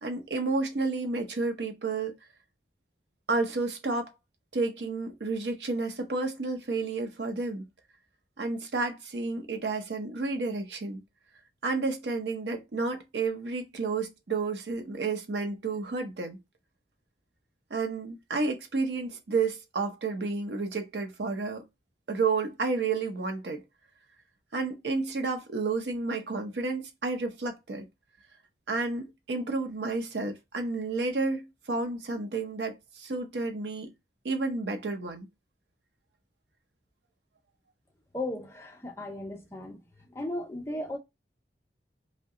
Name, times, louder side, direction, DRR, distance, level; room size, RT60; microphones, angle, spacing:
voice 1, 0.0-2.1 3.3-4.1 4.5-7.7 8.4-11.0 11.6-16.4 17.7-21.6 22.1-23.6 24.5-27.9 28.7-33.9 34.2-35.3, right 3 dB, 75° right, 0.7 m, -31 dB
voice 2, 38.1-39.8 40.1-41.0, left 1 dB, 15° left, 0.5 m, -36 dB
2.7 x 2.2 x 3.5 m
head